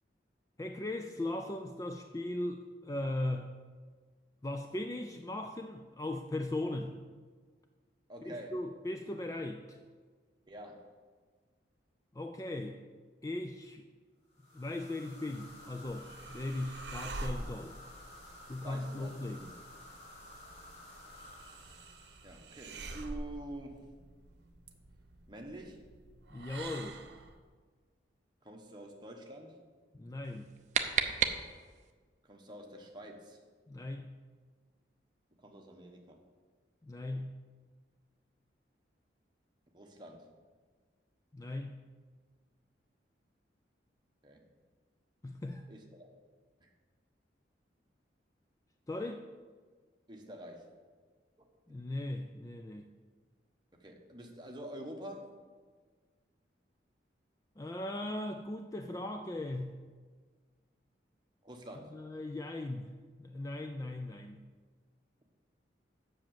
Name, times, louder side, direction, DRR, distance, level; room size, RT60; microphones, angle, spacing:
voice 1, 0.6-3.5 4.4-7.0 8.2-9.8 12.1-12.8 13.2-13.9 14.5-17.8 18.5-19.5 26.3-27.0 29.9-30.5 33.7-34.2 36.8-37.4 41.3-41.8 45.2-45.6 48.9-49.3 51.7-52.9 57.6-59.7 61.9-62.9 63.2-64.4, left 1 dB, 20° left, 5 dB, 0.3 m, -38 dB
voice 2, 8.1-8.7 10.5-10.9 18.6-19.5 22.2-23.9 25.3-25.9 28.4-29.6 32.2-33.4 35.4-36.2 39.7-40.3 44.2-44.4 45.7-46.1 46.6-46.7 50.1-50.7 51.4-51.5 53.7-55.3 61.4-61.9, right 1 dB, 25° right, 1 dB, 1.1 m, -47 dB
sound 1, 14.3-22.9, left 1 dB, 80° left, 3.2 m, -53 dB
sound 2, 15.6-27.4, right 2 dB, 70° right, 0.8 m, -47 dB
sound 3, 30.2-31.9, right 7 dB, 40° right, 0.5 m, -33 dB
7.5 x 6.3 x 7.4 m, 1.5 s
head